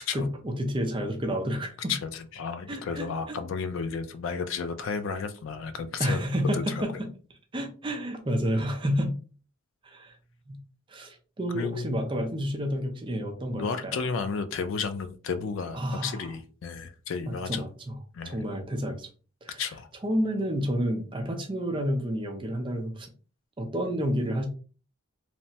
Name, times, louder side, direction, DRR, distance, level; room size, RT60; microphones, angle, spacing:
voice 1, 0.1-1.9 2.7-3.4 6.0-7.1 7.5-9.2 9.8-10.2 10.5-10.6 10.9-14.0 15.7-16.3 17.3-17.7 18.2-19.1 19.4-19.6 20.0-23.1 23.6-24.5, equal, 25° right, 4 dB, 0.4 m, -30 dB
voice 2, 1.9-6.2 6.5-6.8 11.5-12.1 13.5-17.6 18.1-18.4 19.6-19.9, left 5 dB, 60° left, 9 dB, 0.3 m, -32 dB
3.2 x 2.0 x 2.7 m, 0.37 s
head